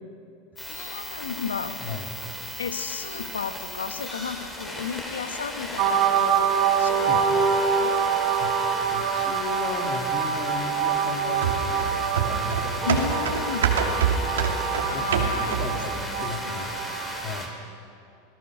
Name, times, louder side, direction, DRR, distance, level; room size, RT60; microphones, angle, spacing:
sound 1, 0.6-17.5, left 1 dB, 15° left, 4.6 m, -35 dB
voice 1, 0.7-1.8 2.6-8.0 12.8-13.7 14.8-15.7 16.0-16.7, left 6 dB, 90° left, 10 dB, 1.2 m, -33 dB
sound 2, 5.8-17.4, right 7 dB, 55° right, 3.3 m, -26 dB
voice 2, 8.9-12.9 13.8-16.8 17.2-17.5, left 5 dB, 50° left, 3 dB, 2.9 m, -36 dB
sound 3, 11.4-15.9 16.2-16.3, right 7 dB, 80° right, 2.5 m, -26 dB
26.5 x 18.5 x 6.3 m, 2.5 s
hypercardioid pair, 90°, 0 cm